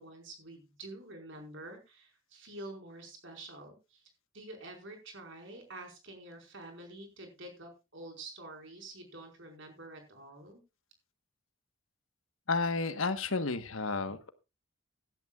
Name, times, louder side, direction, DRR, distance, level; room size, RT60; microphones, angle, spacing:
voice 1, 0.0-4.1 4.3-10.6, right 2 dB, 60° right, 3 dB, 5.0 m, -48 dB
voice 2, 12.5-14.3, left 3 dB, 70° left, 10 dB, 1.3 m, -31 dB
17.5 x 11.5 x 2.4 m, 0.27 s
head